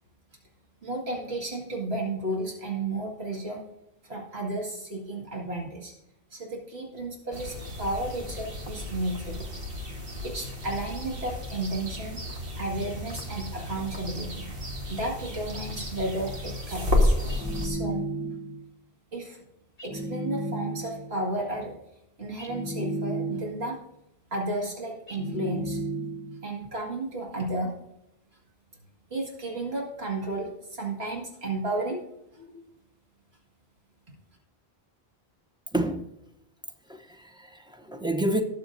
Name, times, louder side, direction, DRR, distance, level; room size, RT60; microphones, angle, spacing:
voice 1, 0.8-3.6 4.0-5.9 6.3-9.4 10.2-12.2 12.6-14.4 14.9-17.2 17.6-18.0 19.1-19.4 19.8-21.8 22.2-23.8 24.3-25.8 26.4-27.7 29.1-32.0 32.3-32.7, right 2 dB, 80° right, 2.3 m, -33 dB
sound 1, 7.3-17.7, left 1 dB, 65° right, 1.8 m, -32 dB
sound 2, 17.3-18.6 19.8-21.1 22.4-23.8 25.1-26.4, right 1 dB, 25° left, 1.5 m, -33 dB
voice 2, 35.7-36.1 36.9-38.4, right 1 dB, 5° right, 0.6 m, -29 dB
19.0 x 6.8 x 2.6 m
omnidirectional pair, 1.0 m